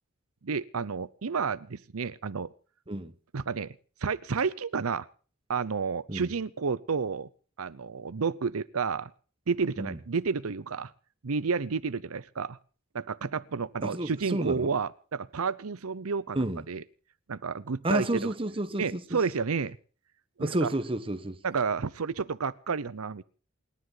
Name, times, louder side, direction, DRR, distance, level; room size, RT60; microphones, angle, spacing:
voice 1, 0.4-2.5 3.3-3.7 4.0-5.1 5.5-7.3 7.6-9.1 9.5-10.9 11.2-12.6 12.9-16.8 17.3-18.3 18.8-19.8 20.4-20.7 21.4-23.2, right 5 dB, 75° right, 0.7 m, -31 dB
voice 2, 13.8-14.7 16.3-16.6 17.8-19.2 20.4-21.4, right 1 dB, 25° right, 1.2 m, -30 dB
28.5 x 11.0 x 3.9 m
head